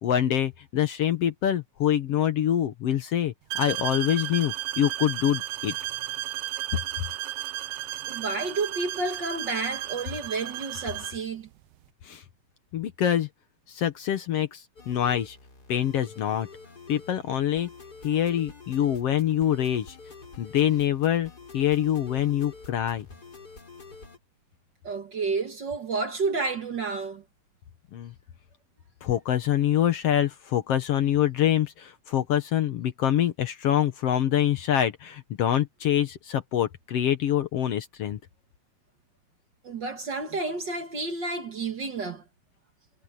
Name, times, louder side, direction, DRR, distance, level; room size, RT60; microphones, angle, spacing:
voice 1, 0.0-5.8 12.0-12.2 12.7-13.3 13.7-15.4 15.7-16.5 16.9-17.7 18.0-20.0 20.4-23.1 27.9-28.1 29.0-38.2, left 10 dB, 65° left, 1.9 m, -25 dB
sound 1, 3.5-11.3, right 14 dB, 80° right, 1.3 m, -34 dB
voice 2, 8.1-11.5 24.8-27.2 39.6-42.2, right 3 dB, 45° right, 1.9 m, -30 dB
sound 2, 14.8-24.2, left 4 dB, 30° left, 5.0 m, -47 dB
omnidirectional pair, 3.3 m